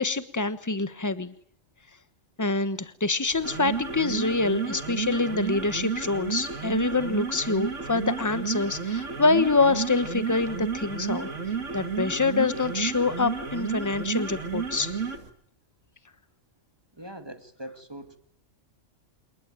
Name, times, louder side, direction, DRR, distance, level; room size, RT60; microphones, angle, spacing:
voice 1, 0.0-1.3 2.4-14.9, left 3 dB, 15° left, 13 dB, 1.2 m, -26 dB
sound 1, 3.3-15.3, right 6 dB, 70° right, 2.6 m, -32 dB
voice 2, 17.0-18.2, right 1 dB, 20° right, 8 dB, 2.3 m, -41 dB
28.0 x 21.5 x 9.0 m, 0.63 s
omnidirectional pair, 1.3 m